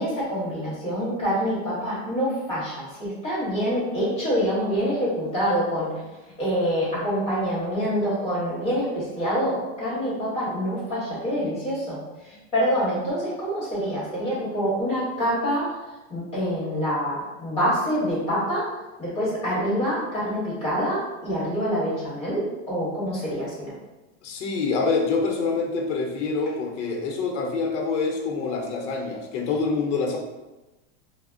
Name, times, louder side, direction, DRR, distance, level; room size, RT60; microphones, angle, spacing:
voice 1, 0.0-6.0 6.4-15.8 16.1-18.7 19.0-23.7, equal, 15° left, -9 dB, 1.1 m, -26 dB
voice 2, 24.2-30.2, left 4 dB, 75° left, 2 dB, 0.7 m, -26 dB
3.3 x 2.0 x 2.5 m, 1.1 s
supercardioid pair, 165°, 36 cm